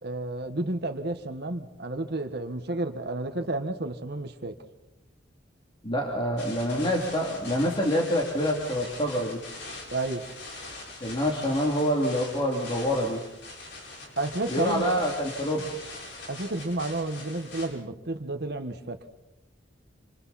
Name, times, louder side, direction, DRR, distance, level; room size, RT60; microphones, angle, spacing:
voice 1, 0.0-4.6 9.9-10.2 14.2-14.9 16.3-19.0, right 2 dB, 60° right, 6 dB, 1.6 m, -31 dB
voice 2, 5.8-9.4 11.0-13.2 14.5-15.7, equal, 25° left, -1 dB, 3.1 m, -26 dB
sound 1, 6.4-17.7, left 2 dB, 65° left, 7.5 m, -42 dB
28.0 x 27.5 x 4.3 m, 0.95 s
head